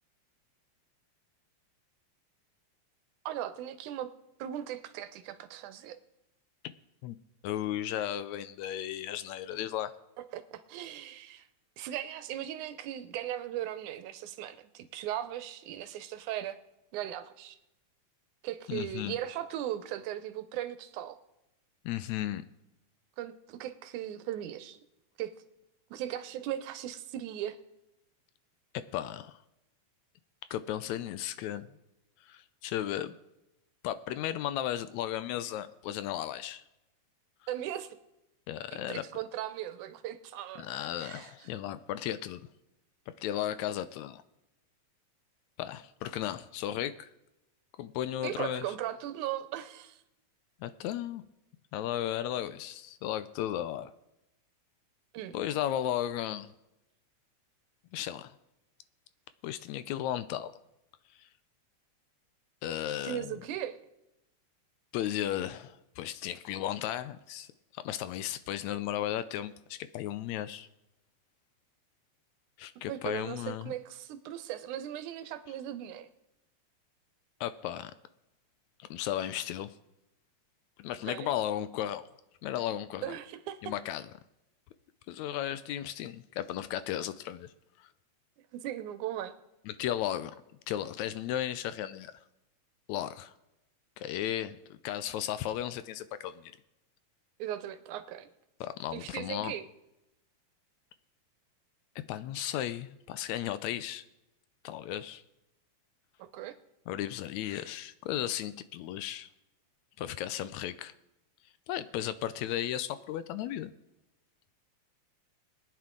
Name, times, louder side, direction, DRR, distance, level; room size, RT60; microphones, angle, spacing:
voice 1, 3.3-4.1 4.4-6.0 10.3-11.5 11.8-16.6 16.9-17.6 18.4-21.2 23.2-24.8 25.2-25.3 25.9-27.6 37.5-38.0 38.9-40.7 40.9-41.3 48.2-50.0 55.1-55.4 63.0-63.8 72.9-76.1 81.1-81.3 83.0-83.7 88.5-89.4 97.4-98.3 98.9-99.7 106.2-106.6, right 11 dB, 90° right, 11 dB, 2.2 m, -38 dB
voice 2, 7.4-10.0 18.7-19.2 21.9-22.5 28.7-29.4 30.5-31.7 32.2-33.1 33.8-36.6 38.5-39.0 40.6-42.5 43.1-44.2 45.6-47.1 47.8-48.7 50.6-51.2 51.7-53.9 55.3-56.5 57.9-58.4 59.4-60.5 61.2-61.3 62.6-63.4 64.9-70.7 72.6-73.7 77.4-77.9 78.8-79.8 80.8-82.0 82.4-83.2 83.6-84.0 85.1-87.5 87.8-87.9 89.7-90.3 90.7-92.1 92.9-93.3 94.0-96.5 98.6-99.5 102.1-104.0 104.6-105.2 106.9-109.3 110.0-110.9 111.7-113.7, left 11 dB, 80° left, 13 dB, 1.8 m, -35 dB
21.5 x 9.4 x 3.8 m, 0.92 s
omnidirectional pair, 3.4 m